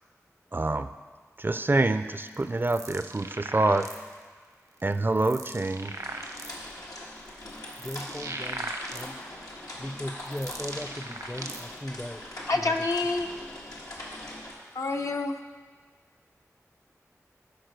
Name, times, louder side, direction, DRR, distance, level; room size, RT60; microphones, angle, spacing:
voice 1, 0.5-0.9 1.4-3.9 4.8-5.9, right 2 dB, 40° right, 10 dB, 0.4 m, -26 dB
sound 1, 2.2-4.2 4.8-6.7 7.3-9.4 10.0-11.8, right 2 dB, 75° right, 0.9 m, -39 dB
sound 2, 5.8-14.5, left 1 dB, 90° left, 1.6 m, -42 dB
voice 2, 7.8-9.4 9.8-12.9, left 1 dB, 15° left, 10 dB, 0.5 m, -38 dB
voice 3, 12.5-13.3 14.7-15.4, left 3 dB, 70° left, 3 dB, 0.7 m, -27 dB
10.5 x 4.5 x 6.6 m, 1.5 s
wide cardioid pair, 50°, 6 cm